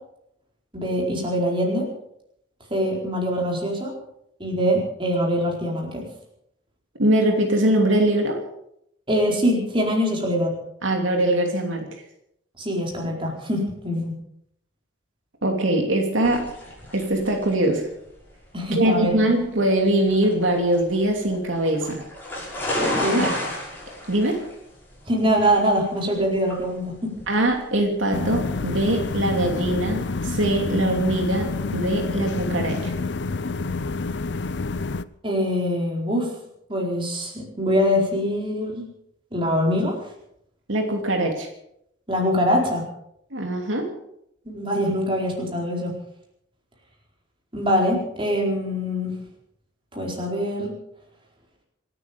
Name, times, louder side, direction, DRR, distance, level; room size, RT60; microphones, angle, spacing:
voice 1, 0.7-1.8 2.7-3.9 4.4-6.0 9.1-10.5 12.6-14.2 18.5-19.1 23.0-23.2 25.1-27.1 35.2-36.3 36.7-38.9 39.3-39.9 42.1-42.9 44.5-45.9 47.5-49.1 49.9-50.7, equal, 25° right, -1 dB, 4.6 m, -23 dB
voice 2, 7.0-8.4 10.8-11.9 15.4-16.5 16.9-17.8 18.7-22.0 23.2-23.4 24.1-24.4 27.3-32.9 40.7-41.5 43.3-43.9, right 1 dB, 85° right, 2 dB, 2.9 m, -22 dB
sound 1, 16.2-28.6, left 1 dB, 10° left, 6.3 m, -33 dB
sound 2, 28.1-35.0, left 3 dB, 60° left, 0.6 m, -28 dB
27.0 x 9.9 x 5.3 m, 0.76 s
head